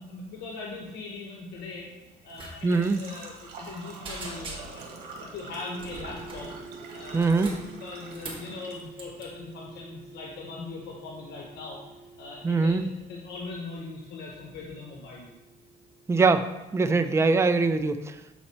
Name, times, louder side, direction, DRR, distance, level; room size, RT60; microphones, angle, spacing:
voice 1, 0.0-1.9 2.2-6.5 6.9-7.4 7.8-11.8 12.2-12.8 13.1-15.3, left 3 dB, 75° left, -1 dB, 1.1 m, -40 dB
Engine / Trickle dribble / Fill (with liquid), 1.6-13.6, right 4 dB, 70° right, 1.4 m, -48 dB
sound 1, 2.3-2.5 2.8-3.0 3.4-3.8 4.0-5.0 5.8-6.5 7.1-8.5 9.0-9.3, right 2 dB, 30° right, 2.2 m, -41 dB
voice 2, 2.6-3.0 7.1-7.5 12.4-12.9 16.1-16.5 16.7-18.2, right 4 dB, 15° right, 9 dB, 0.4 m, -22 dB
sound 2, 5.6-16.3, right 3 dB, 50° right, 2.6 m, -49 dB
7.8 x 4.3 x 4.3 m, 1.1 s
cardioid pair, 110°, 17 cm